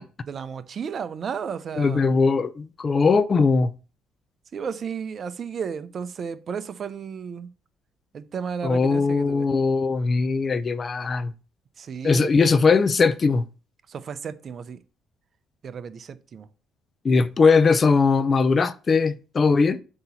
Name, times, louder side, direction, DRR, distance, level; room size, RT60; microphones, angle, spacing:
voice 1, 0.3-2.1 4.5-7.5 8.1-9.5 11.8-12.5 13.9-14.8 15.6-16.5, right 6 dB, 50° right, 0.6 m, -33 dB
voice 2, 1.8-3.7 8.6-11.3 12.0-13.4 17.0-19.8, left 4 dB, 40° left, 0.5 m, -20 dB
7.8 x 3.0 x 5.6 m
cardioid pair, 85°, 0 cm